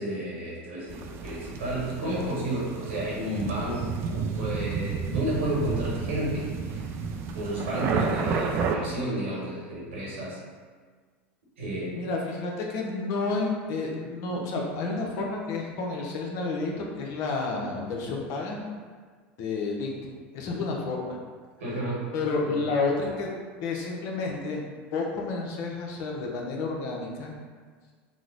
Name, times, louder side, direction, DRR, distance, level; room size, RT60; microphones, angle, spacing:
voice 1, 0.0-6.8 7.3-10.4 11.6-12.0 21.6-22.0 22.4-22.6, right 1 dB, 85° right, -6 dB, 1.2 m, -31 dB
sound 1, 0.9-8.8, right 5 dB, 45° right, 0.3 m, -31 dB
voice 2, 11.9-18.6 19.4-20.0 20.3-21.2 22.1-23.3 23.6-24.6 24.9-27.3, left 3 dB, 60° left, -1 dB, 0.7 m, -30 dB
3.0 x 2.0 x 3.8 m, 1.5 s
hypercardioid pair, 100°, 6 cm